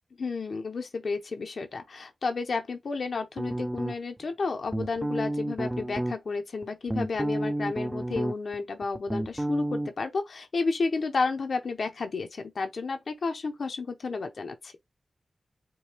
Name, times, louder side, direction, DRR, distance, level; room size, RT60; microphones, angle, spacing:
voice 1, 0.2-14.7, left 4 dB, 70° left, 0.6 m, -32 dB
sound 1, 3.4-4.2 4.7-6.2 6.6-8.6 8.8-9.9, right 1 dB, 15° right, 0.4 m, -30 dB
4.6 x 2.2 x 3.3 m
wide cardioid pair, 100°, 0 cm